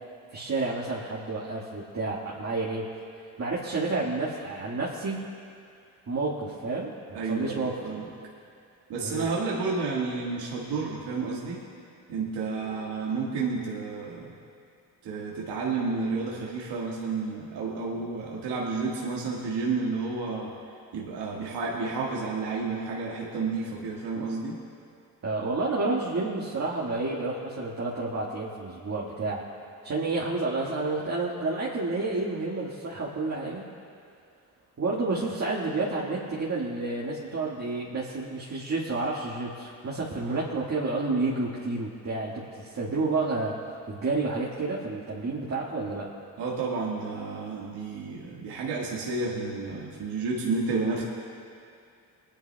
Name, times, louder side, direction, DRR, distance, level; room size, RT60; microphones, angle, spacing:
voice 1, 0.3-2.9 3.4-5.2 6.1-7.8 9.0-9.3 25.2-29.4 29.8-33.6 34.8-43.5 43.9-46.1, right 3 dB, 40° right, -6 dB, 1.8 m, -30 dB
voice 2, 7.1-8.0 8.9-11.6 12.1-14.3 15.0-20.5 20.9-24.6 46.4-51.0, right 4 dB, 70° right, -4 dB, 1.7 m, -31 dB
23.5 x 10.5 x 2.3 m, 2.4 s
hypercardioid pair, 50°, 42 cm